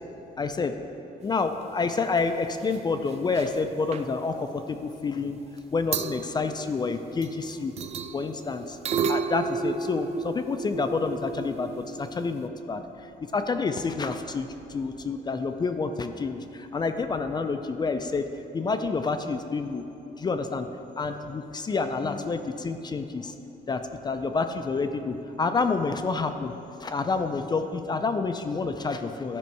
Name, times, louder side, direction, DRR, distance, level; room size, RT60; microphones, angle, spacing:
voice 1, 0.4-0.8 1.2-5.4 5.7-7.7 8.1-8.8 9.1-18.2 18.5-19.8 20.2-20.7 21.0-23.3 23.7-26.5 26.8-29.4, left 4 dB, 25° left, 7 dB, 0.4 m, -28 dB
sound 1, 2.0-2.2 2.5-2.8 3.0-3.6 3.9-4.1 5.6-5.7 5.9-7.4 7.8-12.5, right 5 dB, 40° right, 0.3 m, -33 dB
12.5 x 5.3 x 4.7 m, 2.8 s
cardioid pair, 110°, 17 cm